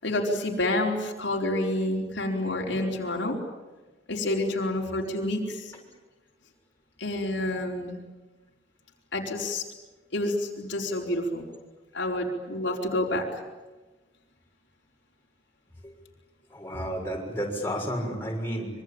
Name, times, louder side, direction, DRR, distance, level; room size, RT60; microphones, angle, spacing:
voice 1, 0.0-3.4 4.1-5.7 7.0-8.0 9.1-9.6 10.1-11.5 11.9-13.4, left 1 dB, 70° left, -1 dB, 4.7 m, -28 dB
voice 2, 16.5-18.7, equal, 10° left, -1 dB, 6.6 m, -32 dB
25.5 x 25.0 x 8.9 m, 1.2 s
head